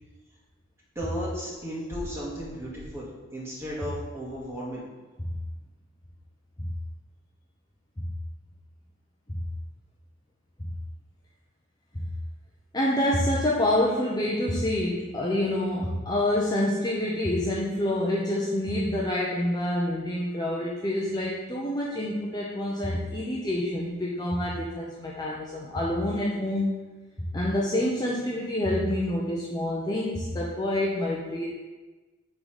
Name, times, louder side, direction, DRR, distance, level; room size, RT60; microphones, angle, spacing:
voice 1, 1.0-4.8, equal, 15° right, -6 dB, 2.1 m, -35 dB
voice 2, 12.7-26.8 27.2-31.5, left 1 dB, 20° left, -4 dB, 0.8 m, -27 dB
9.5 x 4.0 x 5.1 m, 1.2 s
head